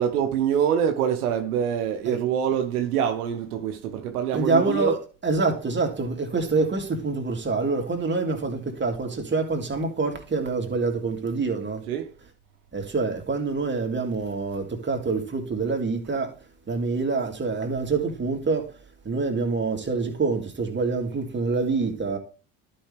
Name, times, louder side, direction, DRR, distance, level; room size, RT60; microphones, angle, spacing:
voice 1, 0.0-4.9 11.9-12.1, right 9 dB, 90° right, 1.0 m, -25 dB
voice 2, 4.3-5.0 5.2-11.8 12.7-16.3 16.7-18.7 19.0-22.2, right 3 dB, 25° right, 2.6 m, -26 dB
11.5 x 5.5 x 3.4 m
hypercardioid pair, 70°, 44 cm